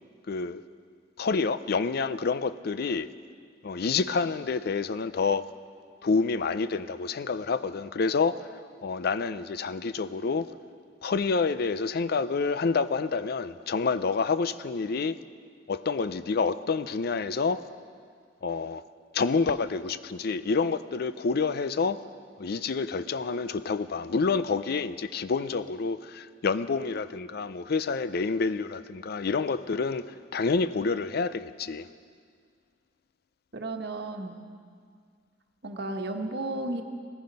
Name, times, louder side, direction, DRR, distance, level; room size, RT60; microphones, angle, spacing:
voice 1, 0.3-0.6 1.2-3.1 3.6-5.5 6.0-8.4 8.8-10.5 11.0-15.2 15.7-17.6 18.4-18.8 19.1-22.0 22.4-30.1 30.3-31.9, left 4 dB, 60° left, 0.5 m, -28 dB
voice 2, 33.5-34.4 35.6-36.8, right 2 dB, 65° right, 1.3 m, -33 dB
17.0 x 14.5 x 5.4 m
head